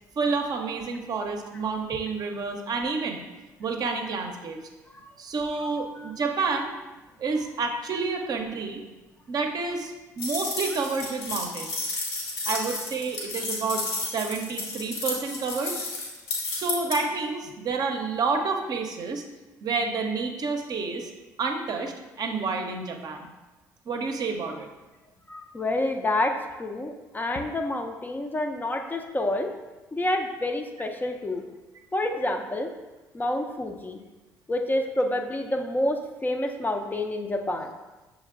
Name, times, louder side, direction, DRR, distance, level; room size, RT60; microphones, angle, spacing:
voice 1, 0.2-3.2 3.6-4.6 5.2-6.7 7.2-8.8 9.3-11.7 12.5-15.8 16.5-19.2 19.6-21.1 21.4-23.3 23.9-24.7 32.1-32.3, right 4 dB, 45° right, 3 dB, 0.6 m, -29 dB
sound 1, 10.2-17.0, left 3 dB, 70° left, 1.0 m, -32 dB
voice 2, 25.3-29.5 29.9-31.4 31.9-32.7 33.1-34.0 34.5-37.7, left 1 dB, 20° left, 4 dB, 0.5 m, -28 dB
6.4 x 3.1 x 2.4 m, 1.1 s
hypercardioid pair, 55°, 9 cm